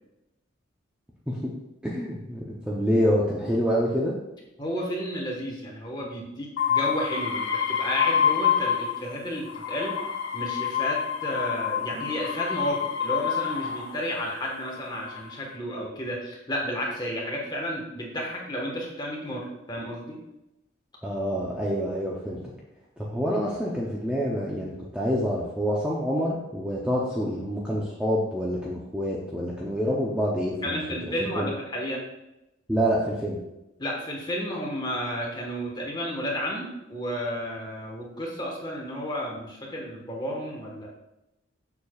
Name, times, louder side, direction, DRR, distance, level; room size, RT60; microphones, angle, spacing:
voice 1, 1.8-4.1 21.0-22.4 23.0-30.8 31.0-31.5 32.7-33.4, equal, 5° right, -5 dB, 0.7 m, -27 dB
voice 2, 4.6-10.0 10.3-20.2 30.6-32.0 33.8-40.9, equal, 20° left, -2 dB, 1.4 m, -32 dB
sound 1, 6.6-9.1 9.5-14.0 14.8-15.3, left 8 dB, 70° left, 0.8 m, -27 dB
7.0 x 6.7 x 2.4 m, 0.91 s
head